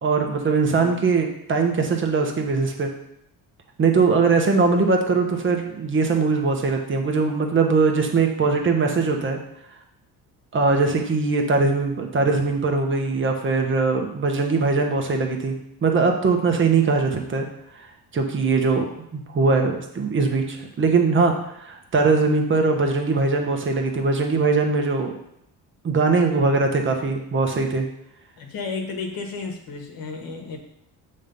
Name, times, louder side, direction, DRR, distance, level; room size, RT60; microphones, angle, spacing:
voice 1, 0.0-2.9 3.8-9.4 10.5-15.5 15.8-17.5 18.1-18.9 19.1-25.1 25.8-27.8, right 4 dB, 30° right, 3 dB, 1.2 m, -21 dB
voice 2, 0.6-1.0 5.1-5.3 28.4-30.6, left 4 dB, 65° left, 3 dB, 1.4 m, -33 dB
7.3 x 3.3 x 5.4 m, 0.79 s
cardioid pair, 105°, 38 cm